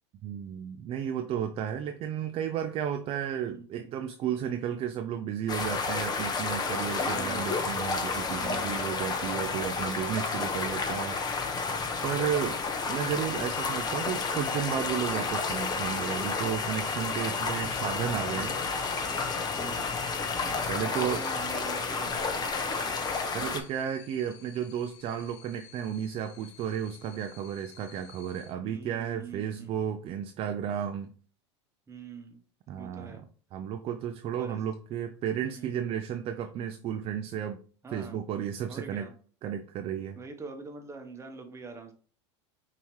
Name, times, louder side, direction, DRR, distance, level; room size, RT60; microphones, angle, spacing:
voice 1, 0.2-12.6 12.9-18.6 20.4-21.2 23.3-31.1 32.7-33.2 33.5-37.6 37.9-39.1 39.4-40.2, right 9 dB, 40° right, 7 dB, 0.4 m, -33 dB
sound 1, 5.5-23.6, left 4 dB, 25° left, 0.8 m, -31 dB
voice 2, 7.1-7.5 8.4-8.8 17.2-17.4 18.3-18.5 19.5-19.9 20.5-23.0 28.6-29.7 31.9-32.4 32.8-33.2 34.3-34.6 35.4-35.7 37.8-38.2 38.7-39.1 40.1-41.9, right 4 dB, 20° right, 5 dB, 1.0 m, -44 dB
sound 2, 13.2-28.5, left 11 dB, 75° left, 0.6 m, -45 dB
5.6 x 2.9 x 3.1 m, 0.42 s
hypercardioid pair, 100°, 15 cm